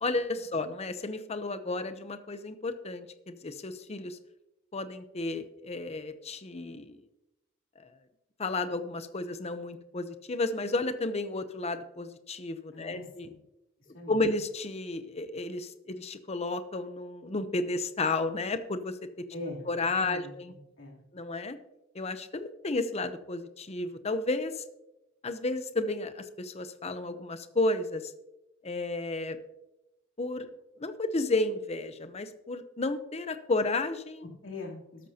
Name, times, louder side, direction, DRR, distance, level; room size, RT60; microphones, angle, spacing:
voice 1, 0.0-4.2 4.7-7.0 8.4-13.3 14.1-18.9 19.7-20.5 21.1-21.6 21.9-24.6 25.2-28.0 28.6-29.4 30.2-30.5 30.8-34.2, left 2 dB, 30° left, 10 dB, 0.8 m, -32 dB
voice 2, 12.7-13.4 13.9-14.2 19.3-19.7 20.0-21.0 34.4-35.1, left 2 dB, 70° left, -2 dB, 3.2 m, -42 dB
13.0 x 12.5 x 2.8 m, 0.93 s
head